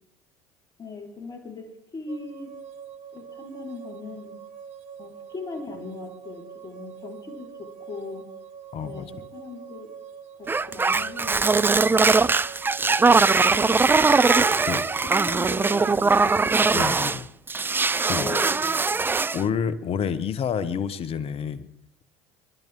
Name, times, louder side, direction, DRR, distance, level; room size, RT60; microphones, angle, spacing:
voice 1, 0.8-2.5 3.1-4.4 5.0-8.3 8.8-9.9 10.4-12.1 13.5-17.0 18.2-18.8, left 3 dB, 30° left, 1 dB, 4.7 m, -39 dB
sound 1, 2.1-16.1, right 7 dB, 55° right, 1.4 m, -44 dB
voice 2, 8.7-9.1 14.7-14.8 16.7-17.3 18.1-18.3 19.3-21.7, left 7 dB, 45° left, 14 dB, 1.3 m, -28 dB
sound 2, 10.5-17.2 17.5-19.4, right 4 dB, 15° right, 0.5 m, -21 dB
30.0 x 12.5 x 3.8 m, 0.76 s
hypercardioid pair, 75°, 13 cm